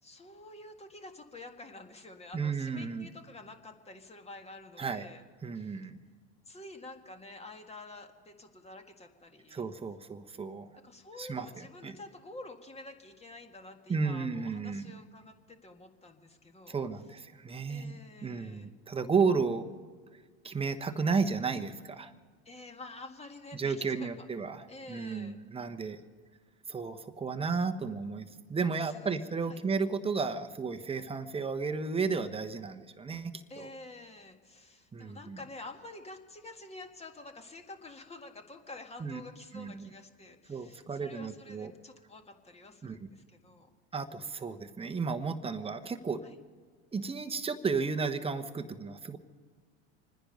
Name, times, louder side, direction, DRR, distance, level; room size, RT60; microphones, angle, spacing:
voice 1, 0.0-5.2 5.5-5.8 6.4-9.6 10.8-16.8 17.7-18.7 22.4-24.3 24.7-25.3 28.7-29.1 29.5-29.6 33.5-43.7 46.2-46.3, left 2 dB, 20° left, 5 dB, 1.8 m, -49 dB
voice 2, 2.3-3.1 4.8-5.1 5.4-5.9 9.5-10.7 11.2-12.0 13.9-14.9 16.7-19.7 20.4-22.1 23.5-26.0 26.7-33.7 34.9-35.4 39.0-39.2 39.5-39.9 40.5-41.7 42.8-43.0 43.9-46.2 46.9-49.2, right 5 dB, 15° right, 7 dB, 1.1 m, -33 dB
26.5 x 10.0 x 5.4 m, 1.5 s
hypercardioid pair, 90°, 33 cm